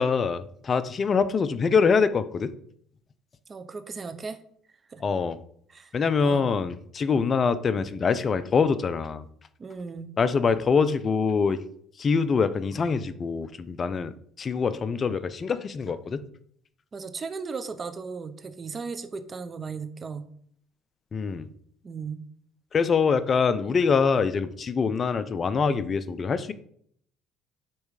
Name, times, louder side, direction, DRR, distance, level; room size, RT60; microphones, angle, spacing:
voice 1, 0.0-2.5 5.0-5.4 5.9-9.3 10.2-11.6 12.0-14.1 14.4-16.2 21.1-21.5 22.7-26.5, left 5 dB, 35° left, 13 dB, 0.6 m, -24 dB
voice 2, 3.5-4.4 4.9-5.0 5.7-6.4 9.6-10.1 16.9-20.3 21.8-22.3, right 5 dB, 30° right, 10 dB, 0.8 m, -36 dB
8.7 x 3.2 x 4.8 m, 0.63 s
supercardioid pair, 95°, 0 cm